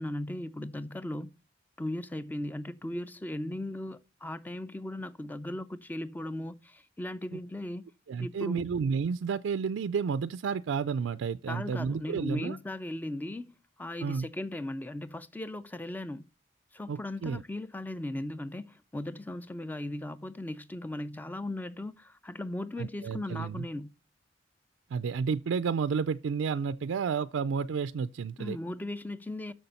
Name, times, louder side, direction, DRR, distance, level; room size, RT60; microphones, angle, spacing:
voice 1, 0.0-1.3 1.8-7.9 8.2-8.6 11.5-16.3 16.7-23.9 28.4-29.5, left 1 dB, 10° left, 0.3 m, -37 dB
voice 2, 8.1-12.6 14.0-14.3 16.9-17.4 22.8-23.6 24.9-28.6, right 6 dB, 85° right, 0.4 m, -31 dB
6.8 x 6.4 x 5.5 m
head